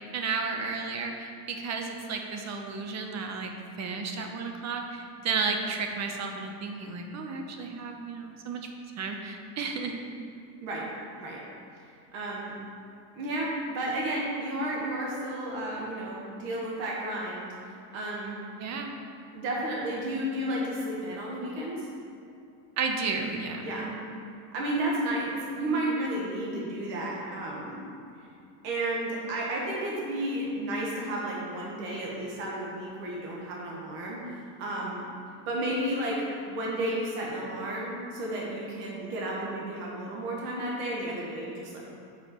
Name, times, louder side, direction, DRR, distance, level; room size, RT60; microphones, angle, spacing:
voice 1, 0.1-8.7 9.0-10.0 18.6-18.9 22.8-24.0, right 4 dB, 35° right, 3 dB, 0.8 m, -33 dB
voice 2, 12.1-12.6 13.1-17.5 17.9-18.4 19.3-21.9 23.6-23.9 24.5-27.8 28.6-35.1 35.4-41.8, right 1 dB, 60° right, -3 dB, 1.6 m, -32 dB
5.3 x 4.7 x 5.9 m, 2.5 s
supercardioid pair, 120°, 49 cm